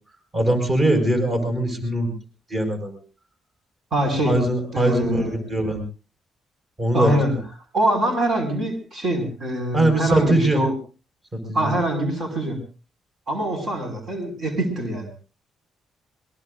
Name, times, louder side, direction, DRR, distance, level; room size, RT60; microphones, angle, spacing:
voice 1, 0.3-2.1 2.5-3.0 4.2-5.8 6.8-7.1 9.7-10.6 11.5-11.7, right 1 dB, 30° right, 4 dB, 5.6 m, -21 dB
voice 2, 3.9-4.4 4.7-5.4 6.9-7.3 7.7-10.7 11.5-12.6 13.3-15.2, right 1 dB, 55° right, 4 dB, 5.8 m, -24 dB
22.5 x 22.5 x 2.6 m, 0.34 s
cardioid pair, 90°, 0 cm